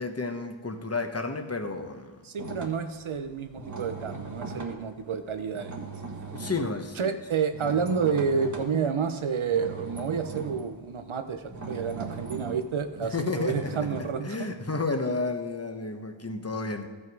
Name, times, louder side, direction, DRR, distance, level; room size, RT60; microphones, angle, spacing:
voice 1, 0.0-2.2 6.3-7.1 13.1-13.6 14.2-16.9, left 3 dB, 30° left, 6 dB, 1.1 m, -31 dB
voice 2, 2.2-5.8 7.0-14.4, right 6 dB, 85° right, 8 dB, 0.8 m, -29 dB
sound 1, 2.4-9.0 9.5-14.0, right 4 dB, 40° right, 1.4 m, -39 dB
14.0 x 5.5 x 4.7 m, 1.4 s
wide cardioid pair, 60°, 47 cm